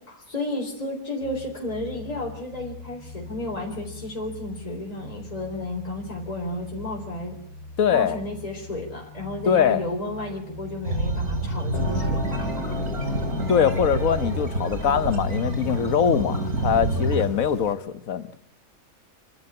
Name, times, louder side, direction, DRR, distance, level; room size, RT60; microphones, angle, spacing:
voice 1, 0.0-7.4 7.9-12.8, left 1 dB, 25° left, 3.9 m, -32 dB
sound 1, 1.2-17.7, left 4 dB, 90° left, 1.6 m, -43 dB
voice 2, 7.8-8.2 9.5-9.8 13.5-18.4, left 8 dB, 65° left, 1.5 m, -22 dB
sound 2, 10.8-17.3, right 2 dB, 90° right, 3.3 m, -28 dB
sound 3, 11.7-17.7, left 2 dB, 50° left, 3.5 m, -34 dB
26.5 x 12.5 x 9.9 m
omnidirectional pair, 1.5 m